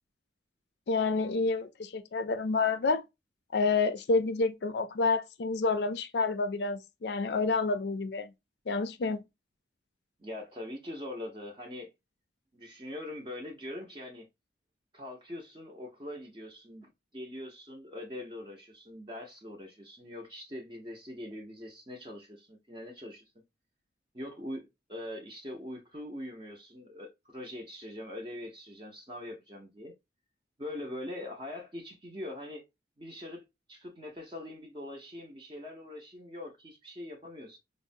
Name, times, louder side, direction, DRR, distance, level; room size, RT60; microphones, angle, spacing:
voice 1, 0.9-3.0 3.5-8.3 8.7-9.2, left 3 dB, 65° left, 0.4 m, -29 dB
voice 2, 10.2-11.9 12.5-14.3 14.9-23.2 24.1-29.9 30.6-32.7 33.0-33.4 33.7-37.6, left 1 dB, 25° right, 0.6 m, -42 dB
4.8 x 2.1 x 2.5 m
head